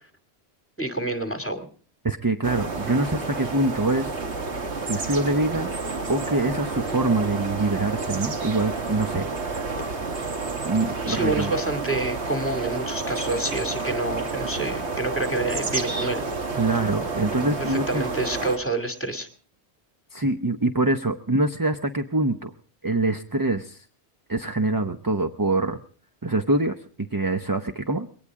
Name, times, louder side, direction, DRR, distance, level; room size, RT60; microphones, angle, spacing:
voice 1, 0.8-1.7 11.1-16.2 17.6-19.3, right 2 dB, 10° left, 6 dB, 2.3 m, -28 dB
voice 2, 2.0-4.2 4.8-5.7 6.1-9.3 10.6-11.5 16.5-18.0 20.1-22.5 22.8-23.8 24.3-25.8 26.2-26.7 27.1-28.1, right 2 dB, 20° right, 6 dB, 0.7 m, -24 dB
sound 1, 2.4-18.6, right 3 dB, 85° right, 2.0 m, -30 dB
21.5 x 18.5 x 3.6 m, 0.42 s
omnidirectional pair, 1.1 m